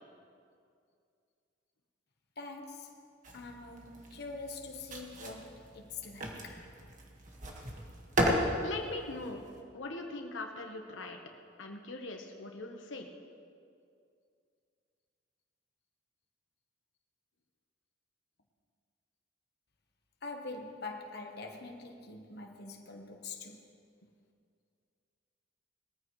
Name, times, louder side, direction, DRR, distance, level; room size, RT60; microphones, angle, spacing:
voice 1, 2.4-3.0 3.3-6.6 20.2-23.7, left 3 dB, 55° left, 1 dB, 1.2 m, -44 dB
sound 1, 3.2-9.6, equal, 40° right, 1.7 m, -36 dB
voice 2, 8.6-9.4 9.7-11.2 11.6-13.1, left 2 dB, 90° left, 2 dB, 1.2 m, -41 dB
20.5 x 14.0 x 3.2 m, 2.4 s
head